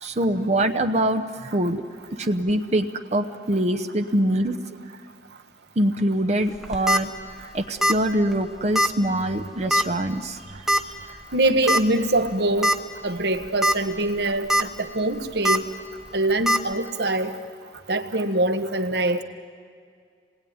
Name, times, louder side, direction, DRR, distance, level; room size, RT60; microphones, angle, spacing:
voice 1, 0.0-1.8 2.1-4.6 5.8-7.1 7.4-11.2, right 1 dB, 40° right, 0.9 m, -24 dB
sound 1, 6.5-7.0 7.8-8.1 8.3-8.4 8.8-8.9 9.7-10.0 10.7-10.8 11.7-11.8 12.3-12.4 12.6-12.8 13.4-13.7 14.2-14.6 15.4-15.6 16.5-16.6, right 1 dB, ahead, 1.0 m, -20 dB
voice 2, 11.3-12.8 13.0-15.6 16.1-17.3 17.9-19.2, right 1 dB, 65° right, 1.4 m, -23 dB
28.0 x 20.0 x 9.5 m
head